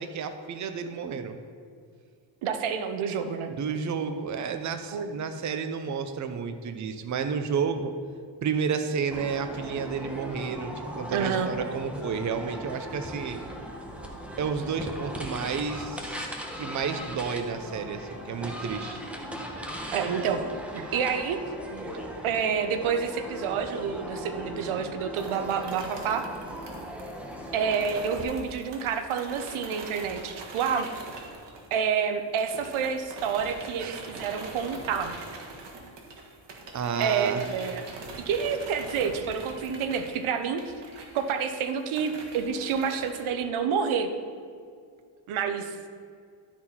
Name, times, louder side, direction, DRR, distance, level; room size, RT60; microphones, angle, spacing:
voice 1, 0.0-1.4 3.6-7.9 8.4-13.4 14.4-19.0 33.8-34.1 36.7-37.5, right 6 dB, 35° right, 7 dB, 0.7 m, -31 dB
voice 2, 2.4-3.5 4.9-5.1 11.1-11.5 19.9-20.4 20.7-21.4 21.7-21.9 22.2-26.2 27.5-30.9 31.7-35.1 37.0-37.8 38.3-40.6 41.1-44.1 45.3-45.8, right 6 dB, 80° right, 7 dB, 0.8 m, -28 dB
sound 1, 9.1-28.2, equal, 5° right, 1.0 m, -38 dB
sound 2, 25.2-32.1 32.4-43.2, right 3 dB, 60° right, 1.6 m, -43 dB
12.0 x 4.4 x 4.3 m, 2.2 s
cardioid pair, 95°, 49 cm